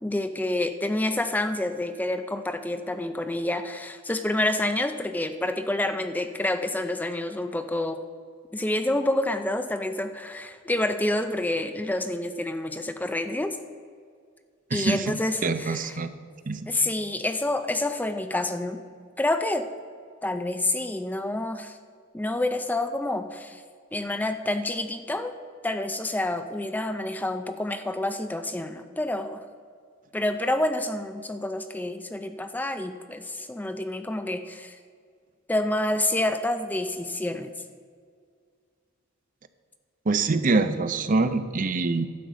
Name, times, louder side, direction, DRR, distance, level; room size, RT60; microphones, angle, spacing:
voice 1, 0.0-8.0 8.5-13.6 14.7-16.0 16.7-18.8 19.2-19.6 20.2-21.8 22.1-23.6 23.9-25.3 25.6-29.4 30.1-34.8 35.5-37.5, left 1 dB, 10° left, 8 dB, 0.4 m, -28 dB
voice 2, 14.7-16.1 16.5-16.7 40.1-42.1, right 3 dB, 40° right, 11 dB, 0.6 m, -25 dB
12.0 x 5.3 x 7.8 m, 2.1 s
head